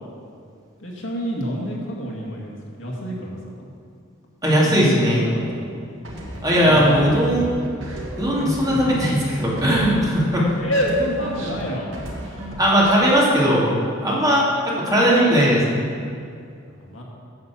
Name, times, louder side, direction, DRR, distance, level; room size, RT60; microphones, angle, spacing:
voice 1, 0.8-3.7 4.4-5.8 6.2-7.0 8.0-8.1 8.7-9.0 10.6-12.0 16.7-17.0, equal, 70° left, -2 dB, 2.1 m, -28 dB
voice 2, 4.4-5.2 6.4-7.6 8.2-10.4 12.6-13.7 14.0-15.6, equal, 20° right, -6 dB, 2.5 m, -18 dB
sound 1, 6.0-10.5 10.7-13.1, equal, 70° right, 2.1 m, -33 dB
9.4 x 7.5 x 7.2 m, 2.3 s
head